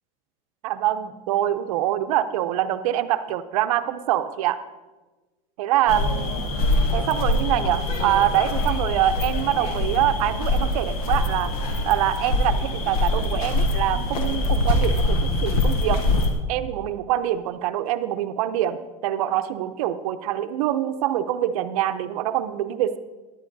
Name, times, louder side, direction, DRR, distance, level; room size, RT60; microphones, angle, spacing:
voice 1, 0.6-4.6 5.6-6.4 6.9-11.5 11.8-16.0 16.5-23.0, right 12 dB, 75° right, 11 dB, 0.6 m, -24 dB
sound 1, 5.9-16.3, left 2 dB, 80° left, 1.4 m, -24 dB
13.0 x 11.0 x 2.7 m, 1.2 s
supercardioid pair, 105°, 19 cm